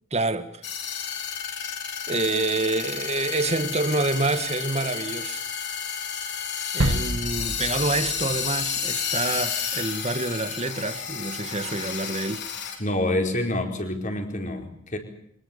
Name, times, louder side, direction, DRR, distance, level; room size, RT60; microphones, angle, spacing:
voice 1, 0.1-0.6 2.1-5.4 6.7-12.5, right 2 dB, 30° right, 1.8 m, -27 dB
sound 1, 0.6-12.8, left 7 dB, 50° left, 5.0 m, -31 dB
sound 2, 6.8-9.3, right 1 dB, 65° right, 1.5 m, -29 dB
voice 2, 12.8-15.0, left 1 dB, 35° left, 4.5 m, -27 dB
24.5 x 21.0 x 7.0 m
head